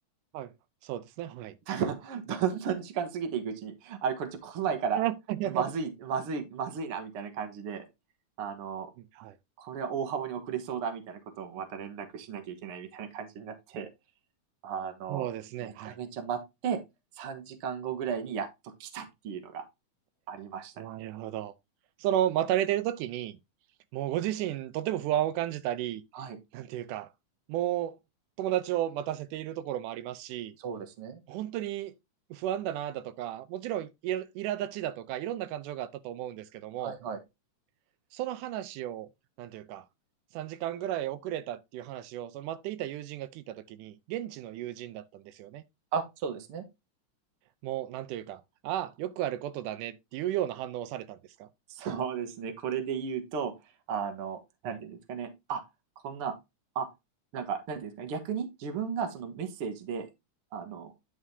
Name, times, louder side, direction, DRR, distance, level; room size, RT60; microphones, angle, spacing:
voice 1, 0.8-1.6 4.9-5.7 9.0-9.4 15.1-16.0 20.8-21.5 22.0-23.4 23.9-26.0 26.5-27.1 27.5-28.0 28.4-30.6 31.3-31.9 32.3-37.0 38.1-39.1 39.4-39.9 40.3-45.6 47.6-51.5, right 12 dB, 90° right, 2.2 m, -33 dB
voice 2, 1.7-5.0 5.5-7.9 8.4-8.9 9.6-13.9 14.6-15.3 15.6-16.8 17.2-19.6 20.3-20.9 26.1-26.4 30.6-31.2 36.8-37.2 45.9-46.7 51.7-53.5 53.9-55.6 56.0-56.4 56.8-56.9 57.3-60.1 60.5-60.9, right 7 dB, 55° right, 1.9 m, -34 dB
9.7 x 5.6 x 2.7 m
omnidirectional pair, 3.6 m